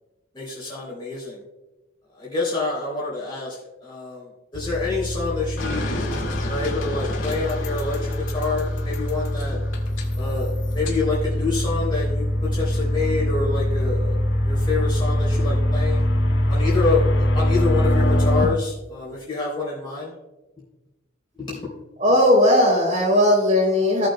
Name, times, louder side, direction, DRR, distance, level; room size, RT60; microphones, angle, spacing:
voice 1, 0.3-1.4 2.2-3.6 3.8-4.3 4.5-6.1 6.5-9.6 10.2-14.1 14.4-16.0 16.5-17.0 17.3-20.1 21.4-21.7, left 3 dB, 25° left, -6 dB, 3.3 m, -27 dB
sound 1, 4.6-18.4, left 1 dB, 65° left, 1.1 m, -23 dB
sound 2, 5.6-11.0, left 2 dB, 80° left, 2.0 m, -34 dB
voice 2, 22.0-24.1, left 1 dB, 35° right, -1 dB, 3.1 m, -17 dB
17.5 x 6.7 x 2.2 m, 1.0 s
head